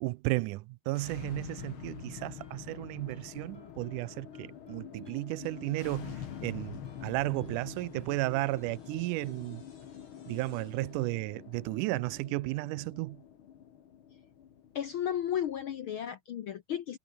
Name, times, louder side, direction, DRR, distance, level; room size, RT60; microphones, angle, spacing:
voice 1, 0.0-9.6 10.3-13.2, right 21 dB, 90° right, 2.1 m, -34 dB
sound 1, 0.9-15.8, left 9 dB, 50° left, 1.9 m, -46 dB
Guitar, 1.6-9.3, left 1 dB, 5° left, 4.4 m, -59 dB
sound 2, 5.4-11.1, left 3 dB, 85° left, 9.7 m, -63 dB
voice 2, 14.7-17.0, left 10 dB, 70° left, 1.2 m, -34 dB
omnidirectional pair, 3.6 m